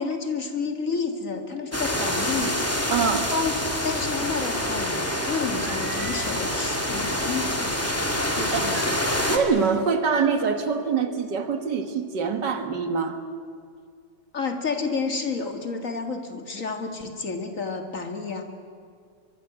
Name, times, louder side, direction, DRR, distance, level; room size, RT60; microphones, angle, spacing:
voice 1, 0.0-7.8 8.3-9.0 14.3-18.4, left 4 dB, 45° left, 5 dB, 2.2 m, -30 dB
sound 1, 1.7-9.4, left 1 dB, 5° left, 2.2 m, -26 dB
voice 2, 2.9-3.3 8.2-8.8 9.3-13.2, right 5 dB, 65° right, 7 dB, 2.1 m, -25 dB
Singing, 5.6-7.7 8.7-9.6 10.0-10.5, right 6 dB, 45° right, 1.4 m, -39 dB
23.0 x 22.5 x 8.0 m, 2.2 s
omnidirectional pair, 2.1 m